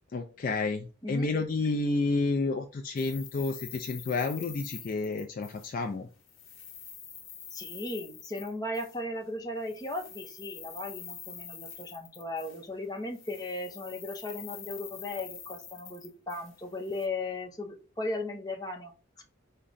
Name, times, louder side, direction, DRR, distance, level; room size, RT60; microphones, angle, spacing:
voice 1, 0.1-6.1, left 3 dB, 45° left, 4 dB, 0.4 m, -30 dB
sound 1, 3.0-5.9 6.2-9.0 9.6-12.8 13.1-17.1, left 8 dB, 85° left, 1.0 m, -46 dB
voice 2, 7.5-18.9, left 2 dB, 20° left, 2 dB, 0.7 m, -37 dB
4.7 x 2.2 x 3.9 m, 0.36 s
head